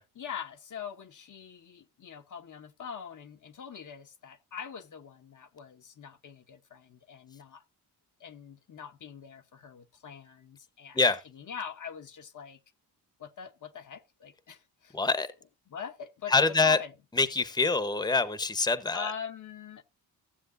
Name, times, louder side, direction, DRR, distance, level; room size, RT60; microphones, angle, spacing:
voice 1, 0.2-7.6 8.2-11.0 11.3-12.6 13.2-15.0 15.7-16.3 16.6-16.9 18.9-19.8, left 7 dB, 50° left, 0.9 m, -43 dB
voice 2, 14.9-15.3 16.3-16.8 17.2-19.1, left 3 dB, 10° left, 0.8 m, -25 dB
15.0 x 7.5 x 2.5 m
cardioid pair, 90°, 40 cm